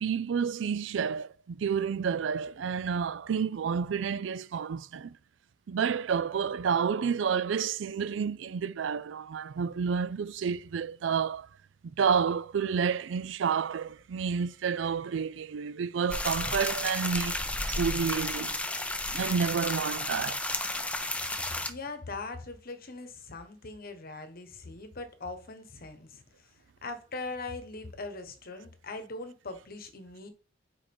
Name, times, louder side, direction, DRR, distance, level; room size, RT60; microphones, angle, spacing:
voice 1, 0.0-5.2 5.7-11.5 11.8-17.4 17.7-18.6 19.1-20.4, right 6 dB, 75° right, 0.4 m, -30 dB
sound 1, 16.1-21.7, left 2 dB, 5° left, 0.6 m, -32 dB
voice 2, 21.7-30.3, left 3 dB, 50° left, 1.2 m, -41 dB
4.9 x 4.8 x 5.3 m
head